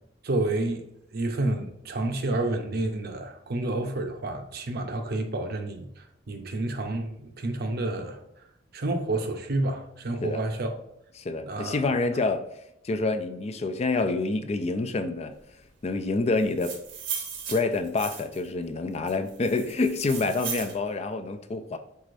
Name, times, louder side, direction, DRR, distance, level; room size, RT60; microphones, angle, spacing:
voice 1, 0.2-0.9 1.1-8.2 8.7-10.7 11.4-11.9, right 2 dB, 55° right, 0.6 m, -29 dB
voice 2, 11.2-12.4 12.8-15.3 15.8-16.8 17.5-21.8, left 3 dB, 35° left, 0.4 m, -27 dB
sound 1, 16.4-18.5 19.1-20.8, right 6 dB, 85° right, 1.0 m, -36 dB
4.7 x 4.2 x 2.5 m
head